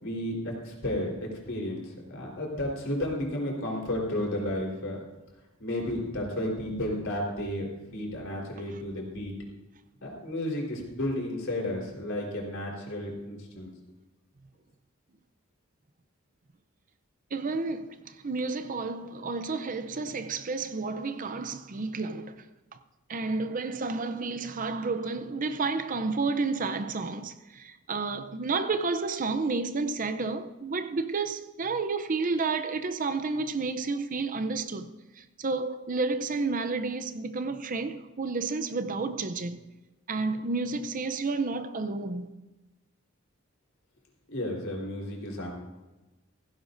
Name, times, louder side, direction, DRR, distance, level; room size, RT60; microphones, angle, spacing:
voice 1, 0.0-1.1 1.4-5.0 5.6-9.3 10.0-13.7 44.3-45.5, left 1 dB, 65° left, 4.1 m, -32 dB
voice 2, 17.3-22.5 23.1-39.7 40.1-42.3, right 3 dB, 40° right, 0.6 m, -31 dB
16.5 x 16.0 x 2.7 m
head